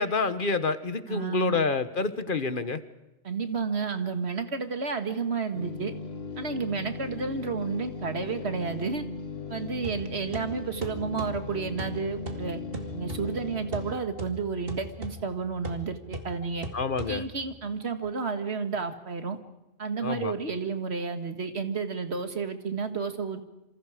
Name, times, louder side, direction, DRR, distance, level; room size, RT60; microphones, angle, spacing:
voice 1, 0.0-2.8 16.7-17.2 20.0-20.3, left 4 dB, 55° left, 12 dB, 1.4 m, -28 dB
voice 2, 1.1-1.6 3.2-5.9 6.4-9.0 9.5-12.6 12.9-16.7 17.1-19.4 19.8-23.4, right 5 dB, 80° right, 8 dB, 2.1 m, -31 dB
sound 1, 5.5-14.0, left 3 dB, 75° left, 1.6 m, -38 dB
sound 2, 9.8-17.6, right 1 dB, 60° right, 2.5 m, -40 dB
27.0 x 27.0 x 5.0 m, 0.99 s
omnidirectional pair, 1.1 m